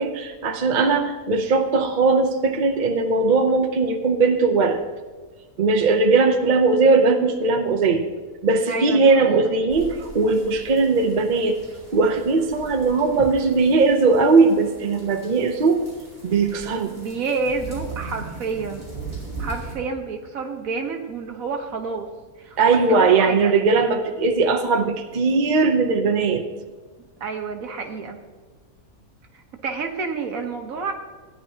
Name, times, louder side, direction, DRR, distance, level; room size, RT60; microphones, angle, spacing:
voice 1, 0.0-4.8 5.6-8.0 8.4-11.6 11.9-15.8 16.2-16.9 22.6-26.4, right 4 dB, 40° right, 5 dB, 0.7 m, -19 dB
voice 2, 8.7-9.4 17.0-18.8 19.4-22.1 22.4-23.5 27.2-28.2 29.3-30.9, right 4 dB, 65° right, 4 dB, 1.4 m, -29 dB
sound 1, 9.7-19.7, right 3 dB, 20° right, 4.0 m, -39 dB
16.0 x 9.9 x 2.8 m, 1.3 s
omnidirectional pair, 1.6 m